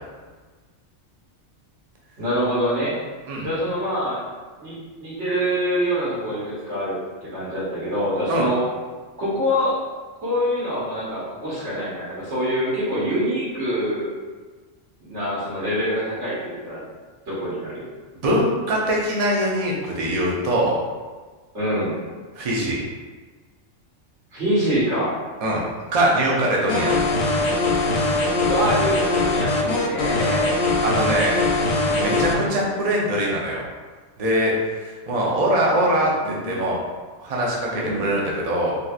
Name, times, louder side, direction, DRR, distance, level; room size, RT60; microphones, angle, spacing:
voice 1, 2.2-3.0 3.4-4.2 4.6-8.6 9.2-9.8 10.2-14.1 15.0-16.8 17.3-17.8 21.5-22.0 24.3-25.1 28.4-30.6 36.2-36.6 37.7-38.1, equal, 70° right, -9 dB, 1.4 m, -25 dB
voice 2, 18.2-20.8 22.3-22.8 25.4-25.6 25.9-26.9 30.8-31.4 31.9-33.6 34.2-36.8 37.2-38.7, right 1 dB, 45° right, -3 dB, 0.5 m, -22 dB
sound 1, 26.7-32.3, left 2 dB, 65° left, 0.8 m, -21 dB
3.5 x 2.7 x 2.4 m, 1.4 s
omnidirectional pair, 1.3 m